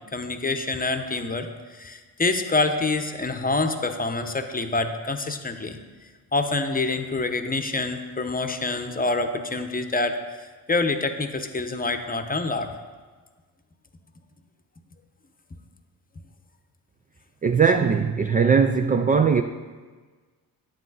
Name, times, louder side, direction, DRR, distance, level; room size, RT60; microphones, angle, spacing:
voice 1, 0.1-5.8 6.3-10.2 10.7-12.7, left 3 dB, 20° left, 0.8 m, -26 dB
voice 2, 17.4-19.4, right 6 dB, 20° right, 0.3 m, -19 dB
9.0 x 7.5 x 4.0 m
supercardioid pair, 65°, 44 cm